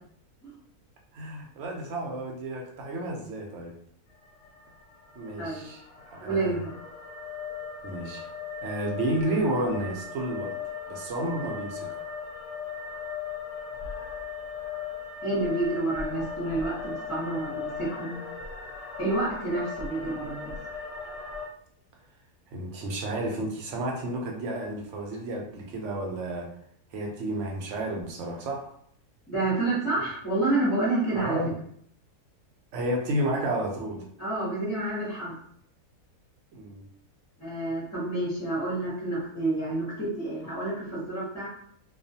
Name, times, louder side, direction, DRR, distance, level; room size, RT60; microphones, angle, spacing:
voice 1, 1.1-3.7 5.1-5.8 6.1-6.6 7.8-8.2 8.6-10.5 10.9-12.0 22.5-26.5 26.9-28.7 31.1-31.5 32.7-34.0 36.5-36.8, right 1 dB, 65° right, 0 dB, 0.8 m, -31 dB
sound 1, 4.1-21.5, left 5 dB, 60° left, 0.8 m, -38 dB
voice 2, 5.4-5.7 6.2-6.6 15.2-18.1 19.0-20.5 29.3-31.4 34.2-35.4 37.4-41.5, right 2 dB, 15° left, -10 dB, 0.5 m, -29 dB
2.3 x 2.3 x 2.7 m, 0.65 s
omnidirectional pair, 1.6 m